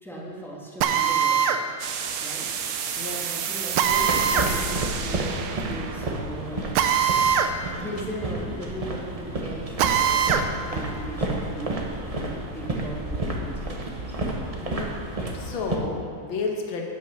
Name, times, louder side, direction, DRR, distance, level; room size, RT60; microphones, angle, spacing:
voice 1, 0.0-1.6 2.1-2.5 3.1-6.6 7.7-10.3 10.7-11.8 12.1-14.0, right 1 dB, ahead, -5 dB, 1.7 m, -38 dB
Drill, 0.8-1.6 3.8-4.5 6.7-7.5 7.9-8.0 9.8-10.5, right 8 dB, 85° right, 1.5 m, -21 dB
sound 1, 1.8-7.5, right 7 dB, 65° right, 0.9 m, -32 dB
sound 2, 3.8-15.8, right 2 dB, 30° right, 0.7 m, -31 dB
voice 2, 14.6-14.9 15.3-16.8, left 4 dB, 70° left, 1 dB, 2.0 m, -31 dB
9.3 x 8.3 x 6.5 m, 2.2 s
omnidirectional pair, 2.3 m